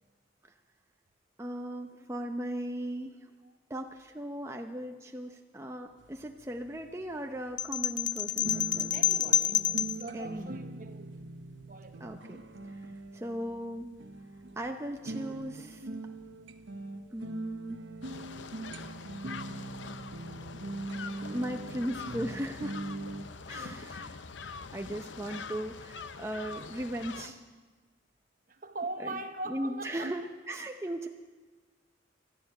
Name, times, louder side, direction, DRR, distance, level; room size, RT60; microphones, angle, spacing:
voice 1, 1.4-3.2 3.7-8.9 10.1-10.6 12.0-13.9 14.6-15.8 17.1-17.8 21.3-22.8 23.5-24.1 24.5-27.4 29.0-29.2 29.5-31.1, right 1 dB, 15° right, 0.6 m, -37 dB
sound 1, 6.0-23.3, right 2 dB, 85° right, 1.0 m, -42 dB
sound 2, 7.6-10.0, left 10 dB, 40° left, 0.4 m, -28 dB
voice 2, 8.9-11.3 11.7-12.1 15.8-16.2 23.4-24.1 28.5-30.1, right 2 dB, 45° right, 1.0 m, -42 dB
sound 3, 18.0-27.3, left 5 dB, 85° left, 0.7 m, -44 dB
12.5 x 12.0 x 9.1 m
head